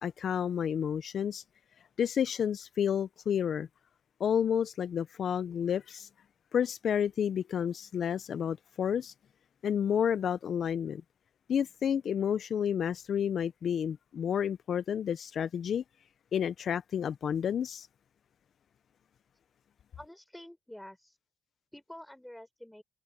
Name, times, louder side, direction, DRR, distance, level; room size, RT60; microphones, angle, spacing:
voice 1, 0.0-1.4 2.0-3.7 4.2-6.1 6.5-9.1 9.6-11.0 11.5-15.8 16.3-17.9, left 8 dB, 60° left, 0.5 m, -30 dB
voice 2, 20.0-21.1 21.7-22.8, left 1 dB, 5° left, 5.9 m, -48 dB
cardioid pair, 90°, 0 cm